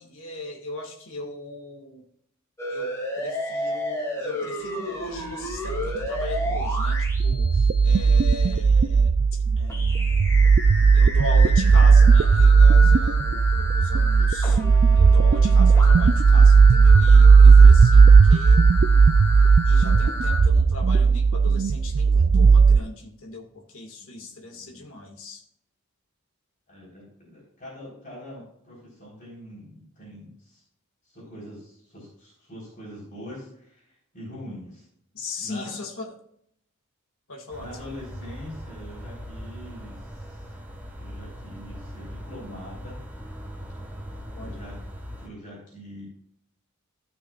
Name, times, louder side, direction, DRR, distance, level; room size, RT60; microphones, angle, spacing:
voice 1, 0.0-2.1 2.7-10.4 10.9-14.6 14.9-18.7 19.7-25.4 35.1-36.2 37.3-37.7 44.3-44.6, left 2 dB, 65° left, 1 dB, 1.9 m, -38 dB
sound 1, 2.6-8.5 9.7-20.4, left 1 dB, 15° left, 2.4 m, -32 dB
sound 2, 5.7-22.8, right 5 dB, 45° right, 0.3 m, -16 dB
voice 2, 24.0-24.9 26.7-30.6 31.0-34.9 35.4-35.7 37.6-40.5 41.0-43.0 44.4-44.8 45.2-46.0, left 1 dB, 40° left, -5 dB, 3.9 m, -43 dB
sound 3, 37.5-45.3, equal, 10° right, 1.4 m, -40 dB
14.5 x 6.0 x 2.4 m, 0.70 s
head